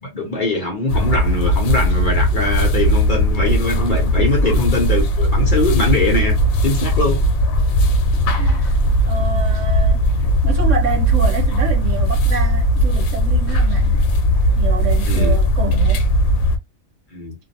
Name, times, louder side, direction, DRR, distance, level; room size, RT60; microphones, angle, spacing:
voice 1, 0.0-6.4 6.6-7.2 15.1-15.4 17.1-17.3, left 2 dB, 50° left, 0.7 m, -22 dB
sound 1, 0.9-16.6, equal, 80° left, 1.0 m, -17 dB
voice 2, 8.3-8.7 9.0-10.0 10.4-14.0 14.5-16.1, right 6 dB, 70° right, 1.1 m, -27 dB
2.5 x 2.0 x 2.6 m
omnidirectional pair, 1.4 m